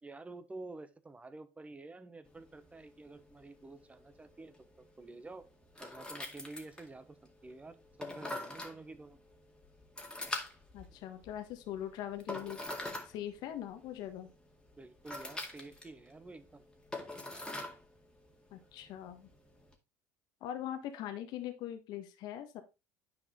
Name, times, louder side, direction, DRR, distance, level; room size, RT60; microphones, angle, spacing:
voice 1, 0.0-5.5 5.8-7.2 7.4-9.2 14.8-16.6, right 2 dB, 15° right, 12 dB, 1.1 m, -50 dB
sound 1, 2.2-19.7, left 2 dB, 10° left, 2.0 m, -46 dB
voice 2, 10.7-12.6 13.0-14.3 18.5-19.3 20.4-22.6, left 11 dB, 60° left, 8 dB, 1.2 m, -41 dB
9.7 x 4.9 x 3.7 m, 0.27 s
hypercardioid pair, 70°, 8 cm